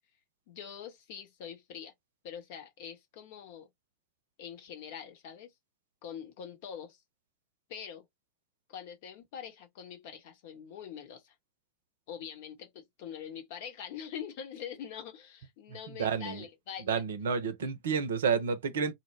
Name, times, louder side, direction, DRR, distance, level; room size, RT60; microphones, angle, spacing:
voice 1, 0.5-1.9 2.2-3.7 4.4-5.5 6.0-7.0 7.7-8.1 8.7-11.3 12.1-17.0 17.6-17.7, left 8 dB, 50° left, 0.8 m, -44 dB
voice 2, 15.9-16.4 16.9-18.9, right 6 dB, 60° right, 0.5 m, -30 dB
2.1 x 2.1 x 3.1 m
figure-of-eight pair, 90°, 0 cm